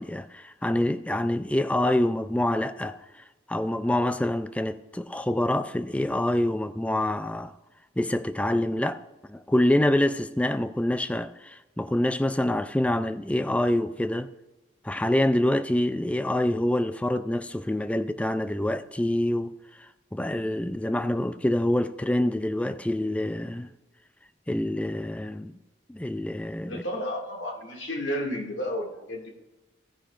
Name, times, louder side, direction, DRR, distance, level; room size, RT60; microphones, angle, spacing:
voice 1, 0.0-3.0 3.5-7.5 8.0-9.0 9.3-14.3 14.8-19.5 20.1-23.7 24.5-25.5 25.9-26.8, left 1 dB, 5° left, 0.3 m, -26 dB
voice 2, 26.6-29.3, equal, 70° left, 2.2 m, -32 dB
15.5 x 9.8 x 2.5 m
head